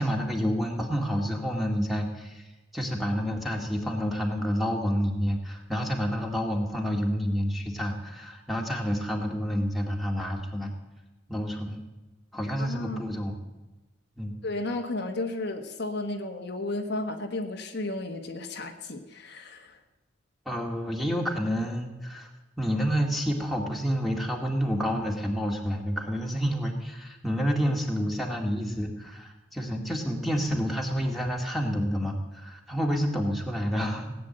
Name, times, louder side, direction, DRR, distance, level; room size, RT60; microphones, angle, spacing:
voice 1, 0.0-10.7 11.3-11.8 12.3-13.3 14.2-14.4 20.5-22.3 22.6-34.1, equal, ahead, 1 dB, 2.0 m, -29 dB
voice 2, 12.6-13.0 14.4-19.8, left 2 dB, 55° left, 4 dB, 1.3 m, -33 dB
17.5 x 9.3 x 7.9 m, 1.1 s
head